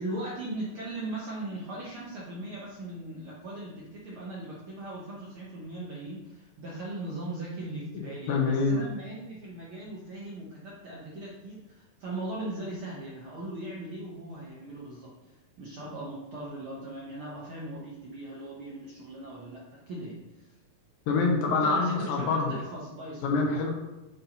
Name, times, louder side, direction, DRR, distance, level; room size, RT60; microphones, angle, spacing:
voice 1, 0.0-20.5 21.5-23.4, right 1 dB, 75° right, -6 dB, 1.2 m, -39 dB
voice 2, 8.3-8.8 21.1-22.5 23.2-23.7, left 4 dB, 80° left, 0 dB, 2.6 m, -25 dB
9.3 x 5.5 x 2.9 m, 1.0 s
omnidirectional pair, 4.1 m